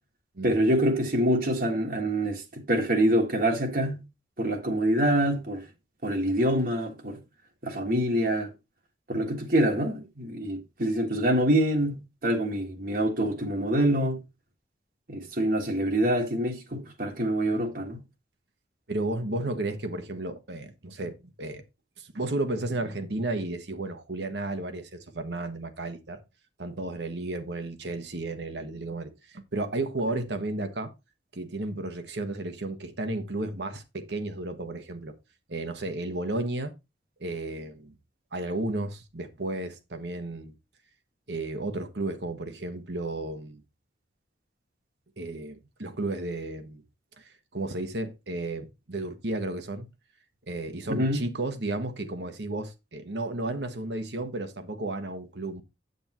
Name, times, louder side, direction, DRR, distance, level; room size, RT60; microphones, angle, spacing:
voice 1, 0.4-4.0 4.4-5.6 6.0-7.2 7.6-8.5 9.1-14.2 15.1-18.0 50.9-51.2, right 1 dB, 55° right, 1.7 m, -25 dB
voice 2, 18.9-21.6 22.0-26.2 26.6-30.9 31.3-35.1 35.5-36.7 37.2-38.0 38.3-40.5 41.3-43.6 45.2-46.8 47.2-47.3 47.5-49.9 50.5-55.6, right 2 dB, 75° right, 1.4 m, -33 dB
8.6 x 8.1 x 3.1 m
head